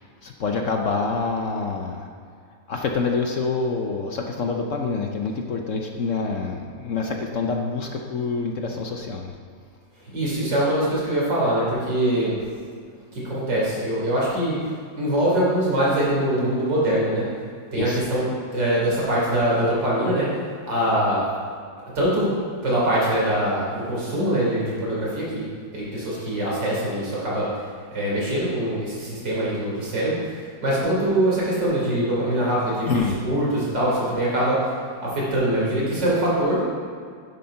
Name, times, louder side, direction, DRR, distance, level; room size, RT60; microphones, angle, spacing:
voice 1, 0.0-2.1 2.7-9.3 17.7-18.0 32.9-33.3, left 4 dB, 55° left, 2 dB, 1.0 m, -26 dB
voice 2, 10.1-12.3 13.1-14.6 15.0-17.2 17.7-18.2 18.5-20.3 20.7-21.3 22.0-22.3 22.6-25.5 25.7-27.5 27.9-30.2 30.6-32.9 33.2-34.6 35.0-36.6, right 1 dB, 85° right, -6 dB, 4.2 m, -23 dB
10.0 x 8.2 x 5.7 m, 2.1 s
omnidirectional pair, 1.9 m